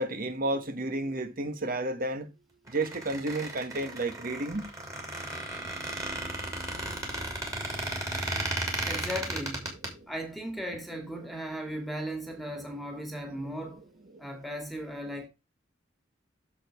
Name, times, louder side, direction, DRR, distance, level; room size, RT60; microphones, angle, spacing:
voice 1, 0.0-2.2 2.7-4.6, right 2 dB, 50° right, 1.3 m, -31 dB
Squeak, 2.7-9.9, right 1 dB, 15° right, 3.0 m, -34 dB
voice 2, 8.8-9.7 10.1-13.8 14.2-15.3, equal, ahead, 2.0 m, -37 dB
8.5 x 7.1 x 3.5 m
head